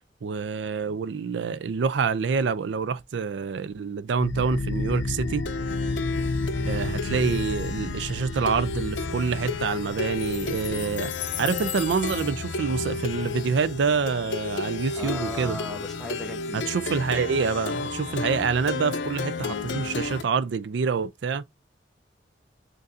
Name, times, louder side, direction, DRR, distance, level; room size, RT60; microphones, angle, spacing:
voice 1, 0.2-5.4 6.6-11.1 11.4-15.6 16.5-21.4, right 5 dB, 80° right, 0.4 m, -27 dB
Plucked string instrument, 4.2-20.2, left 3 dB, 85° left, 0.6 m, -31 dB
voice 2, 15.0-16.7, left 1 dB, ahead, 0.7 m, -36 dB
6.5 x 2.6 x 2.5 m
head